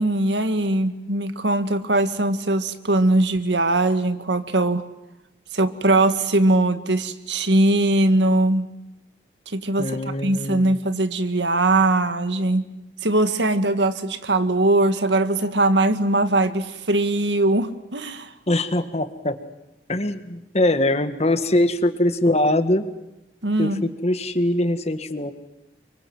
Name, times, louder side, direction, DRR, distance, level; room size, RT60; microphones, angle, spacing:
voice 1, 0.0-4.8 5.5-8.7 9.5-12.7 13.0-18.3 23.4-23.8, right 2 dB, 90° right, 10 dB, 1.8 m, -21 dB
voice 2, 9.8-10.8 18.5-19.4 19.9-22.8 23.6-25.3, left 1 dB, 40° left, 10 dB, 1.8 m, -22 dB
29.5 x 25.0 x 7.9 m, 0.95 s
head